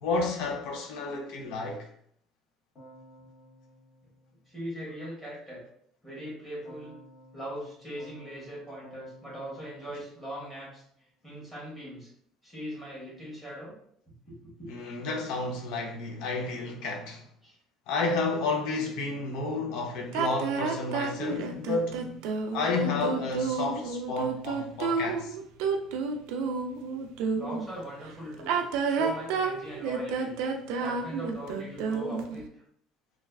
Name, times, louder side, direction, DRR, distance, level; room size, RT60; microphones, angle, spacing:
voice 1, 0.0-1.9 14.7-17.2 17.9-22.2 22.5-25.4, left 3 dB, 75° left, 0.5 m, -31 dB
Keyboard (musical), 2.8-5.1 6.7-10.9, right 1 dB, 30° left, 1.4 m, -55 dB
voice 2, 4.5-5.6 6.0-6.9 7.3-10.8 11.2-12.1 12.4-13.7 14.3-14.7 17.4-17.5 27.3-28.6 28.8-30.3 30.8-32.4, equal, 10° left, 1.5 m, -40 dB
sound 1, 20.1-27.6 28.3-32.4, right 5 dB, 90° right, 0.3 m, -30 dB
3.1 x 2.3 x 2.3 m
cardioid pair, 140°, 0 cm